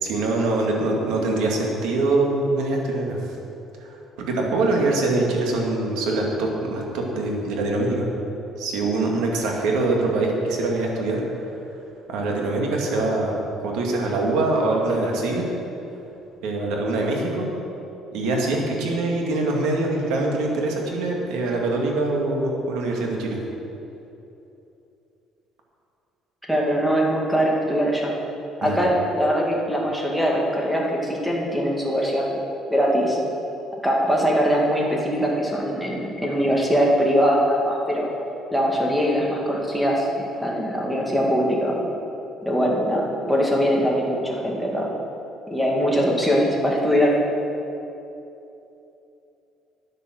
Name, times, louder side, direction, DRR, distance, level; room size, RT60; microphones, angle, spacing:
voice 1, 0.0-3.2 4.2-8.1 8.6-11.2 12.1-13.4 13.6-15.5 16.4-17.5 18.1-23.4 28.6-28.8, right 2 dB, 85° right, 0 dB, 2.0 m, -23 dB
voice 2, 26.5-28.1 28.6-32.4 32.7-33.2 33.8-38.1 38.5-41.8 42.4-44.9 45.5-47.2, equal, 5° right, -2 dB, 1.8 m, -22 dB
10.0 x 8.3 x 6.4 m, 2.9 s
cardioid pair, 135°, 0 cm